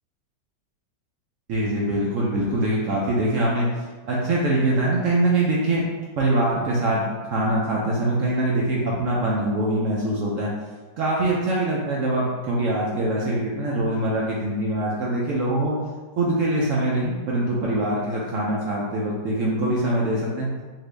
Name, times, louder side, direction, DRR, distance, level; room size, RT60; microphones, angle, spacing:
voice 1, 1.5-3.7 4.1-5.8 6.2-7.1 7.3-10.5 11.0-15.7 16.2-20.5, right 1 dB, 80° right, -5 dB, 0.7 m, -23 dB
2.9 x 2.6 x 3.1 m, 1.3 s
omnidirectional pair, 1.9 m